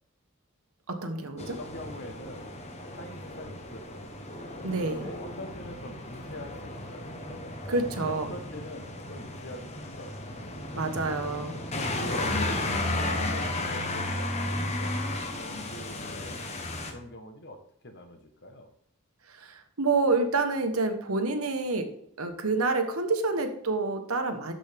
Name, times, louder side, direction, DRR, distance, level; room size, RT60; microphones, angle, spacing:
voice 1, 0.9-1.5 4.6-5.1 7.7-8.3 10.7-11.6 19.3-21.9 22.2-24.5, right 3 dB, 80° right, 6 dB, 1.3 m, -28 dB
voice 2, 1.4-2.5 2.9-4.2 4.9-7.1 8.0-10.2 11.9-16.4 16.9-18.7, left 1 dB, 50° left, 6 dB, 1.2 m, -44 dB
sound 1, 1.4-16.9, left 2 dB, 30° left, 1.1 m, -34 dB
12.5 x 5.3 x 3.5 m, 0.69 s
head